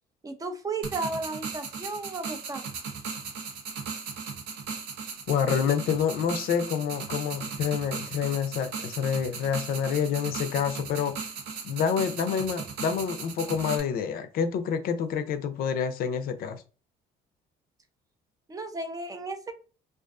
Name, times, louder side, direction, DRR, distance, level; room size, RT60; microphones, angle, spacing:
voice 1, 0.2-2.7 18.5-19.5, right 3 dB, 20° right, 0.4 m, -34 dB
sound 1, 0.8-13.8, right 5 dB, 90° right, 0.6 m, -37 dB
voice 2, 5.3-11.2 11.6-16.6, left 7 dB, 60° left, 0.4 m, -28 dB
2.4 x 2.4 x 2.3 m
cardioid pair, 110°, 17 cm